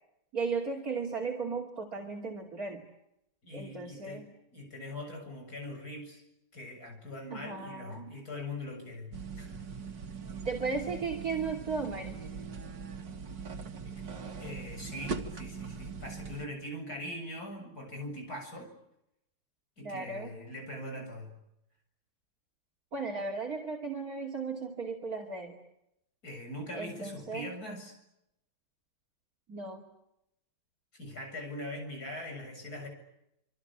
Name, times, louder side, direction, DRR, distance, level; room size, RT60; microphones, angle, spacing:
voice 1, 0.3-2.8 3.5-4.3 7.3-8.1 10.4-12.2 19.8-20.3 22.9-25.6 26.7-27.5 29.5-29.9, right 4 dB, 55° right, 0 dB, 3.1 m, -36 dB
voice 2, 3.4-4.2 4.5-6.2 6.5-9.6 13.9-14.0 14.4-18.7 19.8-21.4 26.2-27.9 30.9-32.9, left 1 dB, 60° left, 4 dB, 7.9 m, -42 dB
sound 1, 9.1-16.5, right 5 dB, 85° right, 2.5 m, -41 dB
26.5 x 25.5 x 8.7 m, 0.83 s
omnidirectional pair, 1.9 m